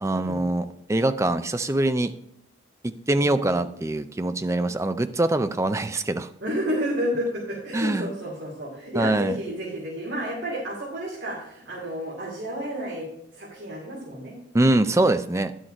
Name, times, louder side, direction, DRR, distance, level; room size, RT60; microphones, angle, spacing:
voice 1, 0.0-2.1 2.8-6.3 7.7-8.1 8.9-9.4 14.5-15.5, right 2 dB, 15° right, 10 dB, 0.4 m, -23 dB
voice 2, 6.4-13.1 13.3-14.4, equal, 65° right, -6 dB, 2.7 m, -31 dB
10.5 x 6.4 x 4.4 m, 0.76 s
head